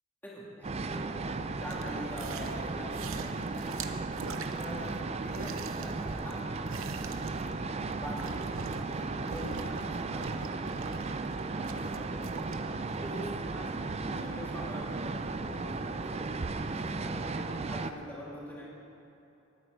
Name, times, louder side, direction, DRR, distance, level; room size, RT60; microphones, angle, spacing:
voice 1, 0.2-3.8 4.2-6.5 6.7-7.7 8.0-12.6 12.9-17.4 17.7-18.6, equal, 10° left, -7 dB, 2.4 m, -45 dB
sound 1, 0.6-17.9, right 3 dB, 30° right, 0.4 m, -35 dB
sound 2, 1.7-2.6 2.9-5.0 5.3-9.0 9.3-9.8 10.2-12.5 13.0-13.1, right 5 dB, 75° right, 0.7 m, -43 dB
18.5 x 8.1 x 4.7 m, 3.0 s
head